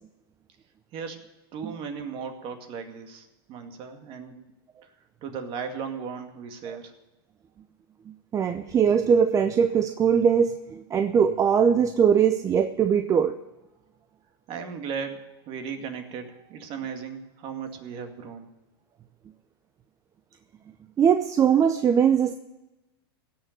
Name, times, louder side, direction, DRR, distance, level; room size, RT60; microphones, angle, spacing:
voice 1, 1.5-4.4 5.2-6.9 14.5-18.5, right 6 dB, 45° right, 5 dB, 2.2 m, -36 dB
voice 2, 8.3-13.4 21.0-22.3, right 7 dB, 25° right, 9 dB, 0.7 m, -21 dB
17.0 x 6.7 x 9.2 m, 0.97 s
hypercardioid pair, 120°, 13 cm